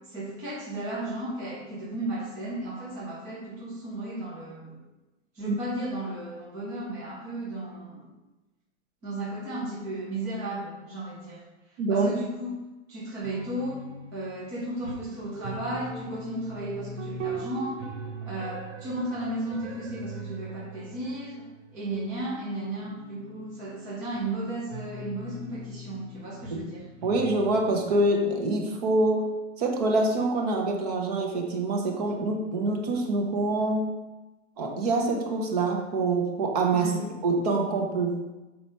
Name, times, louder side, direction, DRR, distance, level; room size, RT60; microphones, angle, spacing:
voice 1, 0.0-4.8 5.3-8.1 9.0-11.4 11.9-12.6 12.9-13.8 14.1-17.8 18.2-21.5 21.7-26.9 36.7-37.1, right 1 dB, 10° right, -8 dB, 0.6 m, -34 dB
voice 2, 11.8-12.1 26.5-26.6 27.0-29.3 29.6-33.9 34.6-36.9 37.2-38.2, right 2 dB, 30° right, 2 dB, 1.1 m, -25 dB
sound 1, 13.2-22.0 22.5-27.7, right 3 dB, 75° right, 1.4 m, -41 dB
6.9 x 4.6 x 5.4 m, 1.1 s
supercardioid pair, 180°, 37 cm